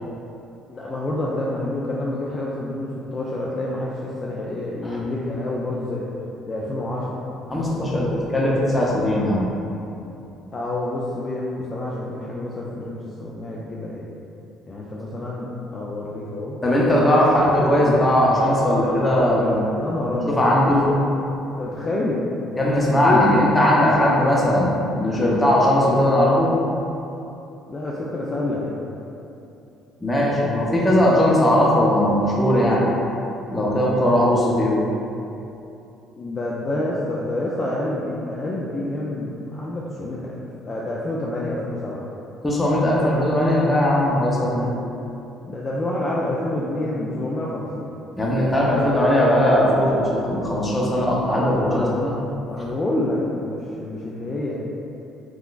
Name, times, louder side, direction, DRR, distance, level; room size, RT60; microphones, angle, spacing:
voice 1, 0.7-6.0 6.5-7.2 10.5-14.0 14.7-16.6 18.8-21.0 21.6-22.2 22.8-23.4 23.8-24.0 27.7-28.8 36.2-42.1 45.4-47.9 51.6-52.1 52.5-54.6, left 1 dB, 35° left, -5 dB, 0.4 m, -28 dB
voice 2, 7.5-9.5 16.6-19.5 20.1-20.8 22.6-26.5 30.0-32.9 33.5-34.8 42.4-44.7 48.2-52.1, left 1 dB, 20° left, -5 dB, 0.8 m, -19 dB
3.6 x 2.4 x 2.4 m, 2.8 s
supercardioid pair, 65°, 0 cm